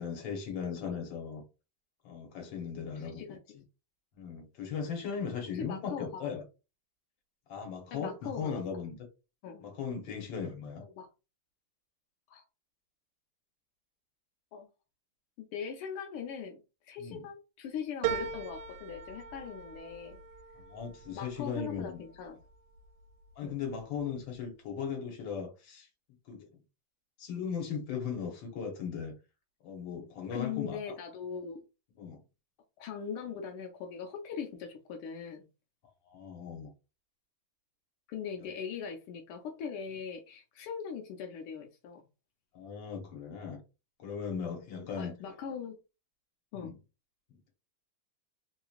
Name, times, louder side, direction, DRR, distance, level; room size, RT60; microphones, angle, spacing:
voice 1, 0.0-1.4 2.0-3.4 4.2-6.4 7.5-9.0 9.6-10.8 17.0-17.2 20.6-22.0 23.4-25.9 26.3-26.5 27.2-29.1 29.6-30.9 32.0-32.2 36.1-36.7 38.4-38.5 42.5-43.6 44.0-45.1 46.5-46.7, left 6 dB, 65° left, 1.7 m, -38 dB
voice 2, 2.9-3.4 5.5-6.3 7.9-8.6 9.4-9.6 10.8-11.1 12.3-12.4 14.5-14.7 15.4-20.2 21.1-22.4 23.4-23.6 30.3-31.6 32.8-35.4 38.1-42.1 44.8-45.8 46.5-46.7, left 7 dB, 85° left, 1.5 m, -40 dB
sound 1, 18.0-22.8 23.3-24.0 24.3-24.4, right 8 dB, 85° right, 1.5 m, -40 dB
3.7 x 3.0 x 2.4 m
omnidirectional pair, 2.4 m